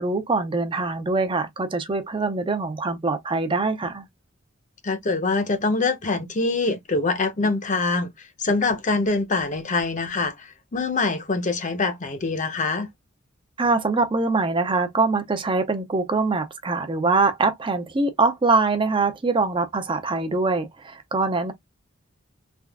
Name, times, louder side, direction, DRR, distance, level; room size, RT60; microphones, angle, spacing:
voice 1, 0.0-4.1 13.6-21.5, right 3 dB, 25° right, 0.5 m, -23 dB
voice 2, 4.8-12.9, left 3 dB, 40° left, 0.7 m, -24 dB
3.5 x 2.4 x 2.2 m
head